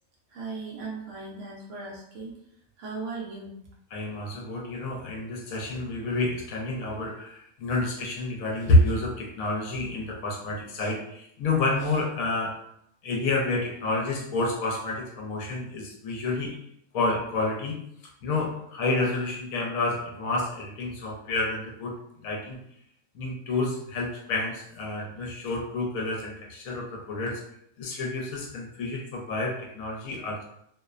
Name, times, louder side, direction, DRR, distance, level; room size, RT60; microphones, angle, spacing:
voice 1, 0.3-2.4 2.8-3.5, right 4 dB, 65° right, -3 dB, 0.8 m, -37 dB
voice 2, 3.9-12.6 13.0-16.6 16.9-17.8 18.2-21.9 22.2-22.6 23.1-27.4 27.8-30.4, left 2 dB, 75° left, -1 dB, 1.0 m, -29 dB
2.7 x 2.0 x 2.3 m, 0.74 s
omnidirectional pair, 1.5 m